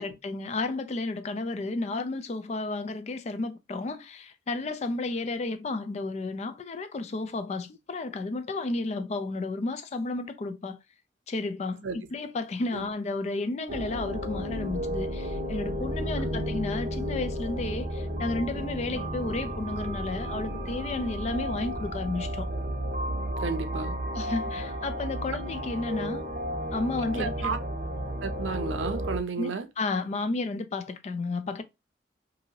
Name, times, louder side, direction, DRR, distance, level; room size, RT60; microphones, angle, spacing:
voice 1, 0.0-10.8 11.3-22.5 24.2-26.2 26.7-27.6 29.4-31.6, left 3 dB, 35° left, 0.3 m, -32 dB
sound 1, 13.7-29.2, equal, 45° right, 0.7 m, -33 dB
voice 2, 23.4-24.0 27.2-27.6 28.2-29.7, right 4 dB, 85° right, 0.5 m, -32 dB
2.8 x 2.6 x 2.7 m
head